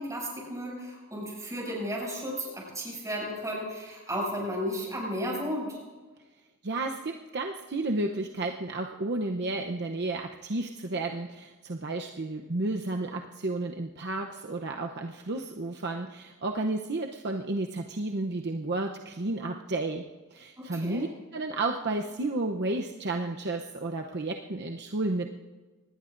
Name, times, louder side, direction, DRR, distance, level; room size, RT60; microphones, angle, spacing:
voice 1, 0.0-5.8 20.6-21.0, equal, 15° right, -3 dB, 6.6 m, -34 dB
voice 2, 6.6-21.1 21.3-25.4, right 2 dB, 50° right, 2 dB, 0.7 m, -32 dB
25.0 x 19.5 x 2.6 m, 1.3 s
head